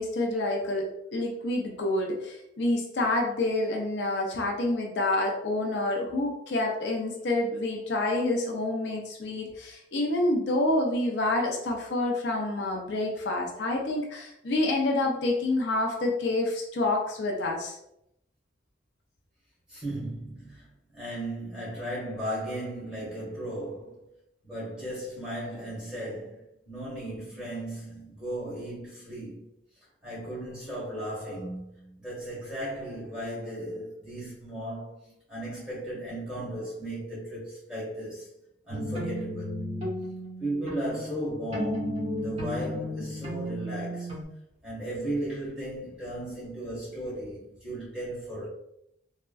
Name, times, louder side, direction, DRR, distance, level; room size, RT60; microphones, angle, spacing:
voice 1, 0.0-17.8, left 2 dB, 70° left, 0.5 m, -28 dB
voice 2, 19.7-24.1 24.4-29.4 30.0-38.3 38.6-39.6 40.4-44.2 44.6-48.5, right 1 dB, 5° right, 1.5 m, -36 dB
sound 1, 38.7-44.2, equal, 35° right, 1.1 m, -34 dB
3.5 x 2.1 x 2.2 m
head